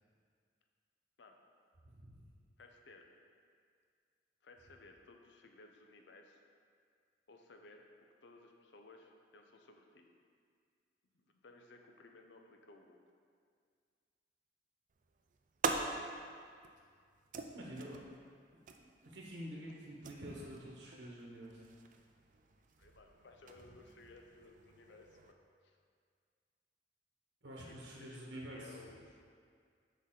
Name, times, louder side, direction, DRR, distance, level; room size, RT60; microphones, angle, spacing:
voice 1, 1.8-2.2 17.5-18.0 18.8-21.6 27.4-28.8, equal, 75° right, -4 dB, 1.0 m, -48 dB
voice 2, 2.6-3.1 4.4-6.4 7.3-7.9 8.2-10.1 11.1-13.0 19.7-19.8 22.8-25.4 25.6-25.8 27.7-29.2, left 3 dB, 75° left, 3 dB, 0.6 m, -59 dB
sound 1, 14.9-25.3, right 4 dB, 45° right, 0.4 m, -45 dB
6.6 x 5.2 x 3.8 m, 2.1 s
head